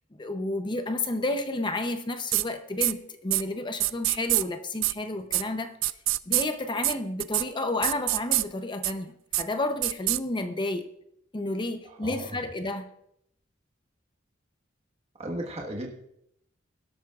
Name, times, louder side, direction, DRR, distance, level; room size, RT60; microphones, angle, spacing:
voice 1, 0.1-5.7 6.3-10.9 11.3-12.9, left 2 dB, 25° left, 0.7 m, -31 dB
sound 1, 2.3-2.4 2.8-2.9 3.3-3.4 3.8-4.4 4.8-4.9 5.3-5.4 5.8-6.4 6.8-6.9 7.2-7.4 7.8-8.4 8.8-8.9 9.3-9.4 9.8-10.2, right 18 dB, 85° right, 0.4 m, -24 dB
voice 2, 11.8-12.3 15.2-15.9, right 1 dB, 35° right, 1.4 m, -35 dB
23.0 x 12.0 x 2.4 m
head